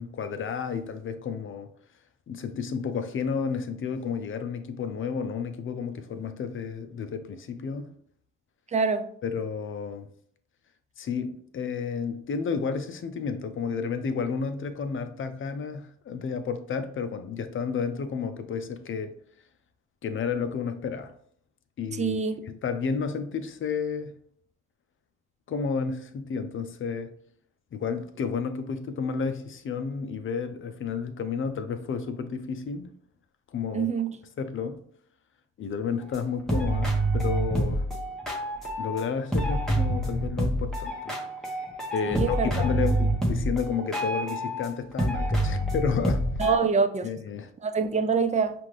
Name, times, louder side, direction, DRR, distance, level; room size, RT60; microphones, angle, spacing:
voice 1, 0.0-1.7 2.3-7.9 9.2-10.1 11.0-19.1 20.0-21.1 21.8-24.1 25.5-27.1 27.7-32.9 33.5-33.9 34.4-34.8 35.6-37.9 38.8-41.2 41.9-46.3 47.0-47.5, left 6 dB, 45° left, 0.5 m, -31 dB
voice 2, 8.7-9.0 22.0-22.4 33.7-34.1 42.1-42.6 46.4-47.1 47.6-48.5, right 5 dB, 25° right, 0.4 m, -25 dB
sound 1, 36.1-36.2 36.5-39.1 39.3-44.7 45.0-46.6, right 1 dB, ahead, 1.1 m, -27 dB
5.5 x 2.5 x 3.2 m
cardioid pair, 90°, 30 cm